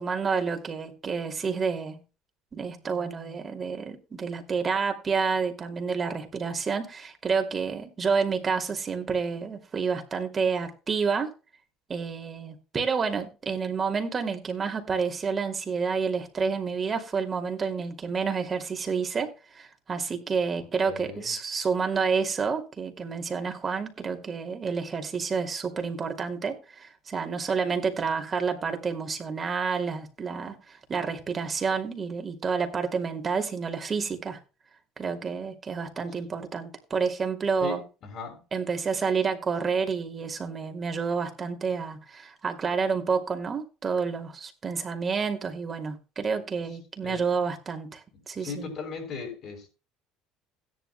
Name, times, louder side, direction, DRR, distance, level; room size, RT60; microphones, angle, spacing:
voice 1, 0.0-2.0 2.5-11.3 11.9-34.4 35.0-37.8 38.5-48.7, right 5 dB, 35° right, 2.5 m, -29 dB
voice 2, 20.8-21.3 37.6-38.4 47.0-47.3 48.4-49.7, left 5 dB, 55° left, 5.4 m, -37 dB
16.5 x 10.5 x 2.2 m
hypercardioid pair, 70°, 0 cm